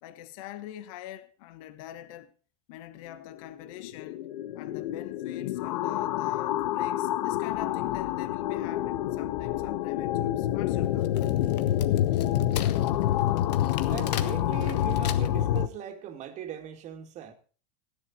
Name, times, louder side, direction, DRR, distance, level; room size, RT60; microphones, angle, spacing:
voice 1, 0.0-2.3 2.7-4.3 4.5-11.1, left 12 dB, 60° left, 1.4 m, -44 dB
sound 1, 3.4-15.7, left 12 dB, 75° left, 0.9 m, -27 dB
Wood, 10.8-15.6, left 11 dB, 90° left, 1.6 m, -40 dB
voice 2, 13.9-17.3, right 10 dB, 35° right, 2.4 m, -40 dB
16.0 x 11.0 x 4.2 m
supercardioid pair, 150°, 20 cm